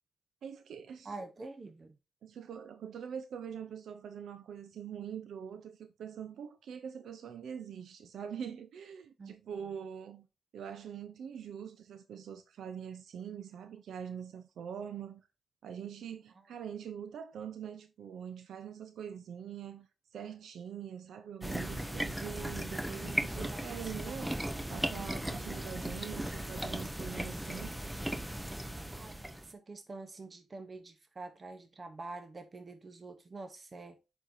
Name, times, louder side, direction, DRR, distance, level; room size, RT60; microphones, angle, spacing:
voice 1, 0.4-1.2 2.2-10.3 10.5-15.2 15.6-19.9 20.1-24.4 24.7-27.7, right 8 dB, 85° right, 0.6 m, -44 dB
voice 2, 1.0-1.9 9.2-9.3 24.0-24.1 25.3-25.5 28.9-34.0, right 3 dB, 40° right, 0.8 m, -46 dB
sound 1, 21.4-29.5, right 1 dB, 5° right, 0.7 m, -37 dB
9.9 x 4.5 x 2.6 m
cardioid pair, 70°, 0 cm